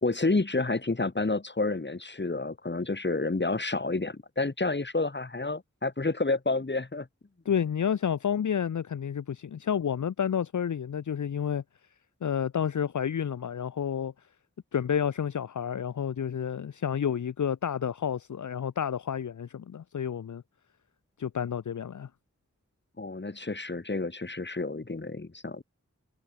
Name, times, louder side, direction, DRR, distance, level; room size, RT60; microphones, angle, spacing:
voice 1, 0.0-7.1 23.0-25.6, left 3 dB, 35° left, 1.8 m, -29 dB
voice 2, 7.5-11.6 12.2-14.1 14.7-20.4 21.2-22.1, left 8 dB, 70° left, 0.6 m, -30 dB
wide cardioid pair, 60°, 30 cm